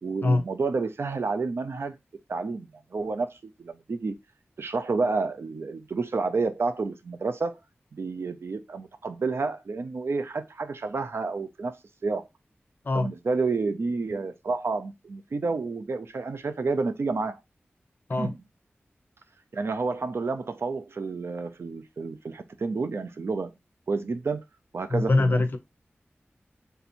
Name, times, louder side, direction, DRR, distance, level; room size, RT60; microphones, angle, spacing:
voice 1, 0.0-2.0 2.3-4.1 4.6-7.5 7.9-11.7 12.0-12.2 12.9-17.4 18.1-18.4 19.5-23.5 23.9-24.4 24.7-25.5, right 4 dB, 70° right, 0.5 m, -30 dB
voice 2, 24.9-25.6, left 2 dB, 50° left, 0.7 m, -23 dB
3.4 x 2.7 x 4.2 m
wide cardioid pair, 85°, 4 cm